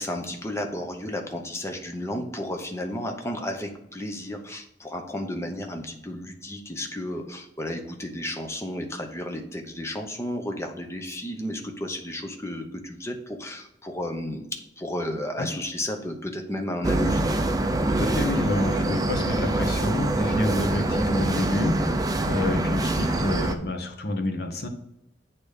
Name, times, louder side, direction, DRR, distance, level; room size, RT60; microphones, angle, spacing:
voice 1, 0.0-17.4, left 1 dB, 15° left, 4 dB, 0.8 m, -33 dB
sound 1, 16.8-23.5, right 1 dB, 20° right, 0.5 m, -25 dB
voice 2, 18.0-24.7, left 1 dB, 65° left, 4 dB, 1.0 m, -28 dB
8.5 x 3.0 x 5.0 m, 0.82 s
head